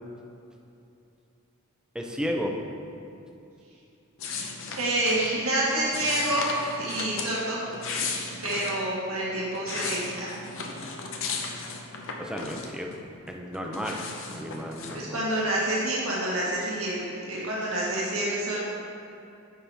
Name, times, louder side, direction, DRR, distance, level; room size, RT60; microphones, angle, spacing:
voice 1, 1.9-2.6 12.2-12.9 13.3-15.2, equal, 5° right, 1 dB, 0.6 m, -33 dB
sound 1, 4.2-5.3 5.9-7.3 7.7-8.8 9.4-13.0 13.3-15.0, left 4 dB, 65° left, 0.8 m, -35 dB
voice 2, 4.7-8.1 8.4-10.3 14.9-18.6, right 1 dB, 75° right, -6 dB, 1.6 m, -28 dB
9.2 x 5.7 x 3.5 m, 2.7 s
head